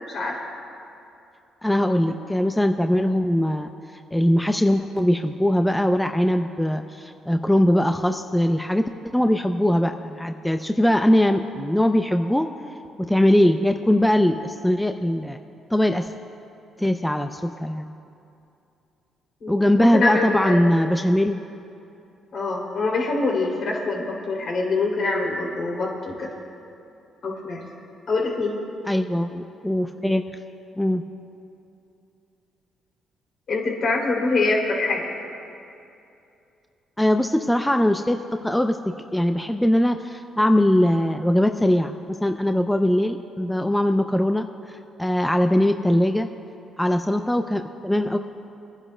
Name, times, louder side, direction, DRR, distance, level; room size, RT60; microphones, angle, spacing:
voice 1, 0.1-0.4 19.4-20.7 22.3-26.3 27.2-27.6 28.1-28.6 33.5-35.0, left 3 dB, 60° left, -1 dB, 2.8 m, -24 dB
voice 2, 1.6-3.7 4.1-12.5 13.0-15.4 15.7-16.1 16.8-17.9 19.5-21.4 28.9-30.2 30.7-31.0 37.0-46.3 46.8-48.2, left 1 dB, 5° left, 6 dB, 0.5 m, -21 dB
28.0 x 10.5 x 2.2 m, 2.7 s
cardioid pair, 80°, 0 cm